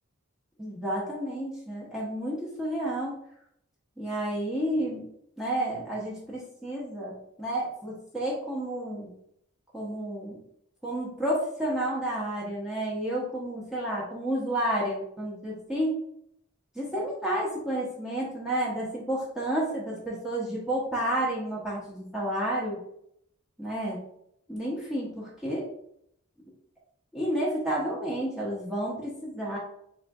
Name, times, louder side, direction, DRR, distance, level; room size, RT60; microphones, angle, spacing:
voice 1, 0.6-3.1 4.0-5.1 5.4-9.1 9.7-10.4 10.8-16.0 16.7-22.8 23.6-24.0 24.5-25.7 27.1-29.6, right 1 dB, ahead, -6 dB, 0.6 m, -31 dB
3.6 x 2.6 x 2.2 m, 0.72 s
head